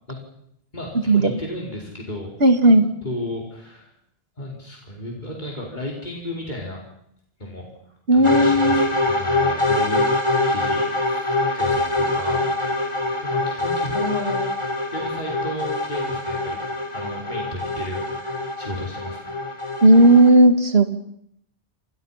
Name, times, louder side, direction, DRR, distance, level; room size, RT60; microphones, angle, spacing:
voice 1, 0.7-2.3 2.6-2.7 3.0-3.9 4.4-6.8 7.4-7.6 8.1-10.0 10.5-11.8 12.1-12.4 13.2-14.4 14.9-16.6 16.9-19.3, left 1 dB, 45° left, -1 dB, 5.1 m, -33 dB
voice 2, 2.4-2.8 8.1-8.9 19.8-20.9, right 1 dB, 70° right, 8 dB, 2.5 m, -14 dB
sound 1, 8.2-20.3, left 2 dB, 25° left, 4.1 m, -24 dB
29.5 x 26.5 x 5.8 m, 0.73 s
omnidirectional pair, 1.1 m